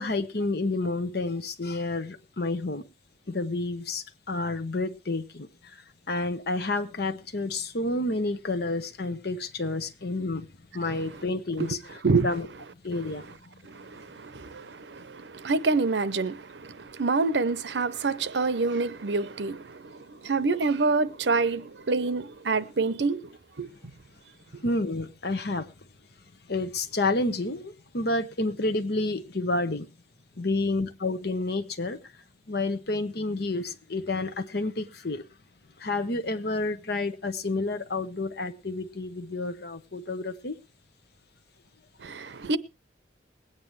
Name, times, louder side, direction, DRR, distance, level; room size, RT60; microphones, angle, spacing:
voice 1, 0.0-2.8 3.3-5.8 6.1-10.5 10.7-11.8 12.2-12.5 12.8-13.3 24.6-25.7 26.5-29.9 30.4-32.0 32.5-35.2 35.8-40.6, left 2 dB, 65° left, 1.1 m, -29 dB
voice 2, 13.6-23.7 42.0-42.6, right 3 dB, 80° right, 0.7 m, -27 dB
21.0 x 9.2 x 3.2 m
head